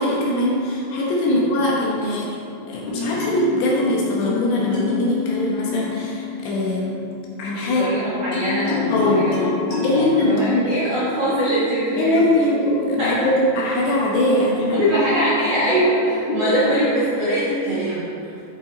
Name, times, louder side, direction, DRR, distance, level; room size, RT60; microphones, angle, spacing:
voice 1, 0.0-2.3 2.7-7.0 7.4-7.8 8.2-8.5 8.9-9.3 9.8-10.7 12.0-14.9 16.3-16.7, left 1 dB, 70° left, -3 dB, 2.9 m, -21 dB
sound 1, 2.9-7.1 8.3-10.1, left 6 dB, 50° left, 1.3 m, -26 dB
voice 2, 7.6-12.2 13.0-13.2 14.7-18.3, equal, 75° right, -10 dB, 1.4 m, -22 dB
10.5 x 5.7 x 4.0 m, 2.5 s
omnidirectional pair, 5.6 m